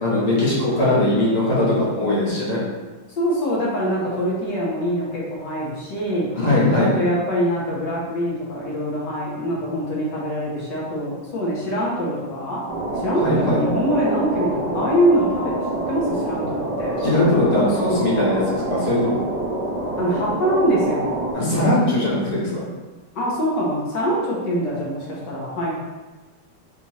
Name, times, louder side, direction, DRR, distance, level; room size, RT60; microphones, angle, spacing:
voice 1, 0.0-2.6 6.3-6.9 13.2-13.6 17.0-19.2 21.3-22.6, left 1 dB, 25° left, -8 dB, 1.4 m, -20 dB
voice 2, 3.2-6.3 6.8-12.7 12.9-15.5 15.9-17.0 20.0-21.2 23.2-25.8, equal, 75° left, -6 dB, 1.8 m, -23 dB
sound 1, 12.7-21.3, right 2 dB, 50° right, 1.2 m, -26 dB
4.3 x 4.1 x 3.1 m, 1.2 s
omnidirectional pair, 1.9 m